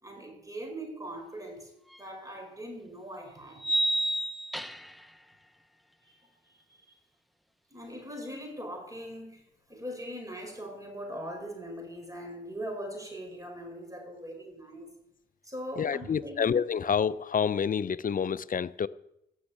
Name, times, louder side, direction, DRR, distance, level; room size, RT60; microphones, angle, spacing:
voice 1, 0.0-1.7 2.0-3.6 6.0-6.2 7.7-14.9 15.4-16.5, equal, 15° right, 5.0 m, -41 dB
sound 1, 1.9-2.0 3.6-5.0, right 1 dB, ahead, 0.7 m, -29 dB
voice 2, 15.8-18.9, left 7 dB, 45° left, 0.5 m, -28 dB
15.5 x 6.3 x 8.5 m
cardioid pair, 65°, 19 cm